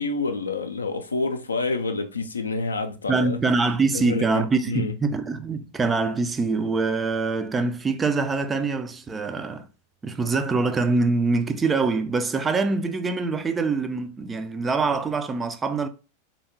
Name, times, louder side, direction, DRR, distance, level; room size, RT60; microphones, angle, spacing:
voice 1, 0.0-3.4 3.9-4.9, left 3 dB, 75° left, 0.4 m, -28 dB
voice 2, 3.1-9.7 10.0-15.9, right 3 dB, 15° right, 0.3 m, -24 dB
3.4 x 2.8 x 2.8 m
figure-of-eight pair, 90°, 0 cm